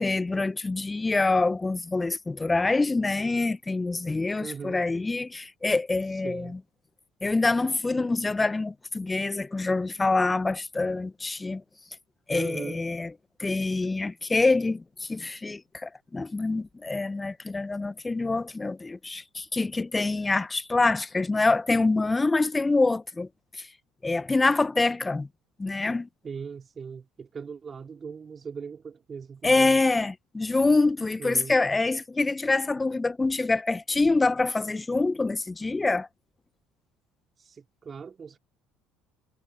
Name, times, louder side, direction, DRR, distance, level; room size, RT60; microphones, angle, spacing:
voice 1, 0.0-6.6 7.2-11.6 12.3-13.1 13.4-23.3 23.5-23.7 24.0-25.3 25.6-26.1 29.4-36.1, left 3 dB, 15° left, 1.2 m, -25 dB
voice 2, 4.4-4.8 6.0-6.6 12.3-12.8 26.2-29.8 31.2-31.6 37.4-38.4, right 6 dB, 30° right, 4.2 m, -39 dB
figure-of-eight pair, 60°, 0 cm